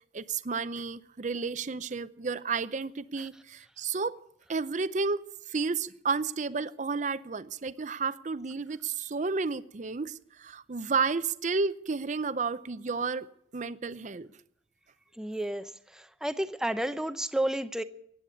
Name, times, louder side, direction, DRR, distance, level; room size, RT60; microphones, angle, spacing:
voice 1, 0.1-4.2 4.5-5.2 5.5-13.3 13.5-14.3, right 4 dB, 45° right, 0.6 m, -31 dB
voice 2, 15.2-15.6 15.9-17.8, right 1 dB, 5° right, 0.6 m, -31 dB
15.5 x 9.4 x 8.2 m
head